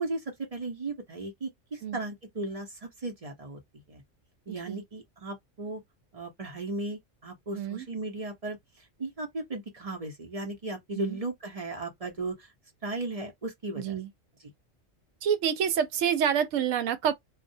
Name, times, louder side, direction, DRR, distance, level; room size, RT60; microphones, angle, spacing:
voice 1, 0.0-3.6 3.9-4.0 4.5-5.8 6.1-12.5 12.8-14.0, right 2 dB, 40° right, 0.6 m, -36 dB
voice 2, 4.5-4.8 7.5-7.9 10.9-11.2 13.8-14.1 15.2-17.1, right 8 dB, 85° right, 0.9 m, -28 dB
2.3 x 2.0 x 2.6 m
omnidirectional pair, 1.3 m